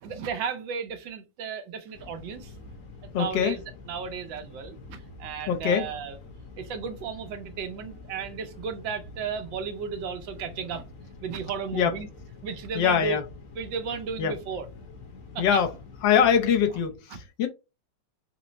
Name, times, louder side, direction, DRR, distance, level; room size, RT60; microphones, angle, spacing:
voice 1, 0.0-2.5 3.1-3.6 3.9-6.2 6.6-10.8 11.2-12.1 12.4-13.2 13.6-14.7 15.3-15.6 17.1-17.2, right 6 dB, 75° right, 1.4 m, -34 dB
sound 1, 1.9-16.9, left 3 dB, 50° left, 1.2 m, -46 dB
voice 2, 3.1-3.6 5.5-5.9 11.7-11.9 12.7-13.2 14.2-14.3 15.4-15.7 16.0-17.5, left 7 dB, 75° left, 1.3 m, -23 dB
4.5 x 2.0 x 3.8 m
omnidirectional pair, 2.1 m